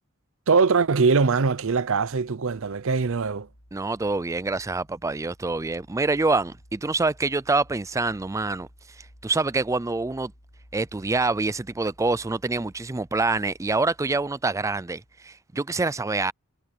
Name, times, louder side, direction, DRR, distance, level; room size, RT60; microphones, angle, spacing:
voice 1, 0.5-3.5, right 4 dB, 65° right, 0.6 m, -22 dB
sound 1, 1.3-15.4, equal, 75° left, 4.6 m, -55 dB
voice 2, 3.7-8.7 9.0-10.3 10.7-16.3, right 3 dB, 15° right, 0.4 m, -26 dB
head